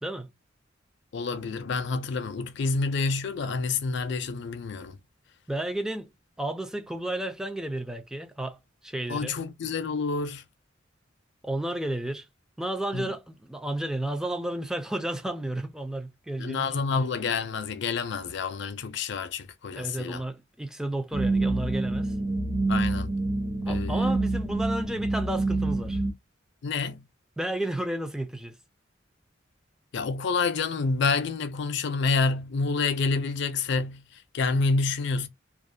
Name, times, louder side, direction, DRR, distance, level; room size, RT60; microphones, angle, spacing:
voice 1, 1.1-5.0 9.1-10.4 12.9-13.1 16.4-20.2 22.7-23.1 23.7-24.1 26.6-27.0 29.9-34.0 34.3-35.3, left 4 dB, 65° left, 0.4 m, -28 dB
voice 2, 5.5-6.1 6.4-9.3 11.4-12.3 12.6-17.0 19.7-22.1 23.7-26.0 27.4-28.6, right 1 dB, 5° right, 0.3 m, -32 dB
sound 1, 21.1-26.1, right 2 dB, 45° right, 0.8 m, -27 dB
2.4 x 2.1 x 2.6 m
head